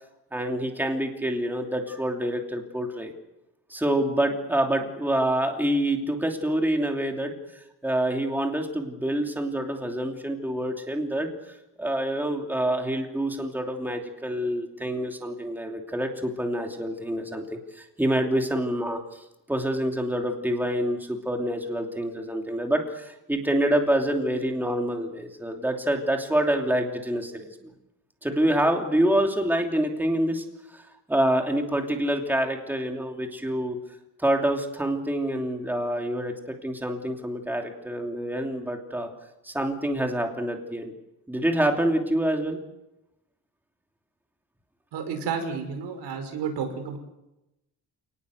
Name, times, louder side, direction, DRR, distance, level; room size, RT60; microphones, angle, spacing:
voice 1, 0.3-3.1 3.7-11.3 11.8-19.2 19.5-27.5 28.2-30.4 30.7-30.8 31.1-33.8 34.2-39.1 39.4-40.9 41.3-42.6, right 1 dB, 5° right, 2 dB, 2.9 m, -26 dB
voice 2, 44.9-47.0, right 6 dB, 90° right, 6 dB, 5.5 m, -31 dB
29.0 x 19.0 x 8.0 m, 0.93 s
cardioid pair, 155°, 39 cm